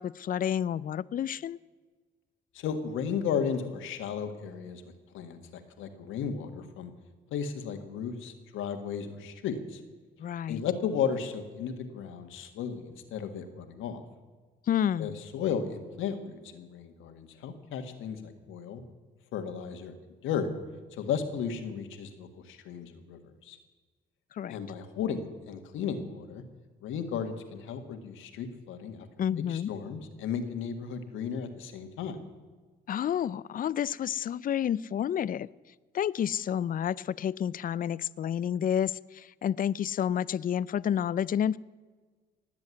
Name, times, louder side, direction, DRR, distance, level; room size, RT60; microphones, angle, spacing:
voice 1, 0.0-1.6 10.2-10.6 14.7-15.2 24.3-24.6 29.2-29.7 32.9-35.5 35.9-41.6, left 9 dB, 45° left, 20 dB, 0.5 m, -30 dB
voice 2, 2.5-4.8 5.1-6.9 7.3-9.8 10.5-14.0 15.0-18.8 19.3-19.9 20.2-20.5 21.0-23.6 24.5-26.4 26.8-29.1 29.4-32.2, left 7 dB, 90° left, 7 dB, 1.8 m, -34 dB
19.0 x 7.8 x 9.7 m, 1.4 s
cardioid pair, 90°, 20 cm